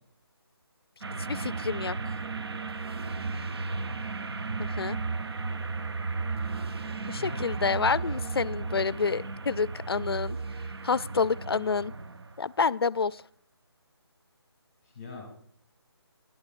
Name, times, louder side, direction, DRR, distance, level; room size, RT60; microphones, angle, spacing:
sound 1, 1.0-12.4, right 4 dB, 65° right, 0.6 m, -34 dB
voice 1, 1.3-2.0 4.6-5.0 7.1-10.4 10.8-11.9 12.4-13.2, left 5 dB, 65° left, 20 dB, 0.4 m, -28 dB
voice 2, 2.7-3.7 6.6-8.5 14.8-15.3, left 3 dB, 15° left, 0 dB, 2.2 m, -47 dB
16.5 x 11.5 x 2.4 m, 0.63 s
hypercardioid pair, 180°, 14 cm